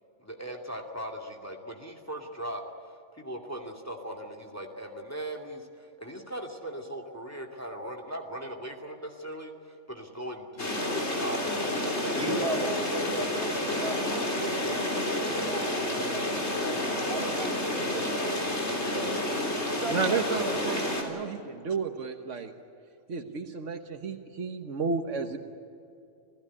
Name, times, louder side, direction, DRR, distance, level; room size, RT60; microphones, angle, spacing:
voice 1, 0.2-2.6 3.1-12.2 12.7-12.8 13.5-13.7 18.8-19.2 20.2-20.6, right 1 dB, 15° left, 2 dB, 2.3 m, -39 dB
sound 1, 10.6-21.0, left 1 dB, 65° left, 3.9 m, -30 dB
voice 2, 12.1-14.6 15.0-18.6 19.5-20.6, right 2 dB, 55° right, 2 dB, 4.2 m, -36 dB
voice 3, 19.9-22.5 23.1-25.4, right 5 dB, 80° right, 6 dB, 1.6 m, -32 dB
27.5 x 16.0 x 9.9 m, 2.6 s
omnidirectional pair, 1.2 m